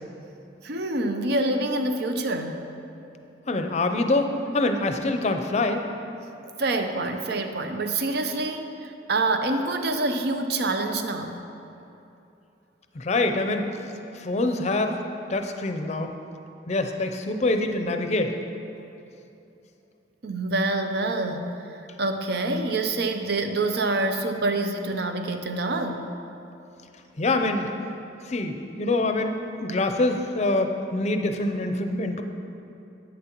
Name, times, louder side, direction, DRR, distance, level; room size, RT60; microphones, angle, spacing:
voice 1, 0.6-2.6 6.6-11.4 20.2-21.5 22.0-26.0, right 2 dB, 60° right, 6 dB, 0.6 m, -26 dB
voice 2, 3.5-5.8 12.9-13.7 14.2-15.0 15.3-16.1 16.7-18.4 27.2-27.7 28.3-32.2, left 2 dB, 40° left, 6 dB, 0.5 m, -25 dB
10.5 x 8.5 x 3.0 m, 2.8 s
head